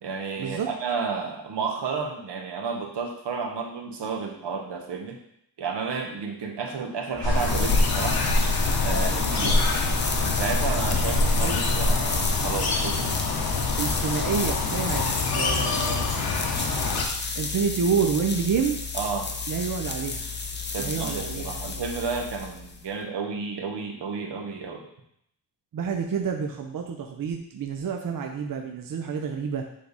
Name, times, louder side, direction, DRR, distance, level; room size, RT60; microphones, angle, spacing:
voice 1, 0.0-5.2 5.6-8.3 8.8-9.6 10.2-13.4 18.9-19.3 20.7-24.8, right 5 dB, 85° right, 2 dB, 1.2 m, -32 dB
sound 1, 7.1-22.9, left 4 dB, 25° left, 0.6 m, -32 dB
sound 2, 7.2-17.0, left 3 dB, 60° left, 1.0 m, -25 dB
voice 2, 13.8-15.1 15.3-16.1 17.4-18.8 19.5-20.2 20.8-21.5 25.7-29.6, right 6 dB, 55° right, 3 dB, 0.6 m, -28 dB
7.5 x 3.5 x 4.0 m, 0.73 s
wide cardioid pair, 115°, 41 cm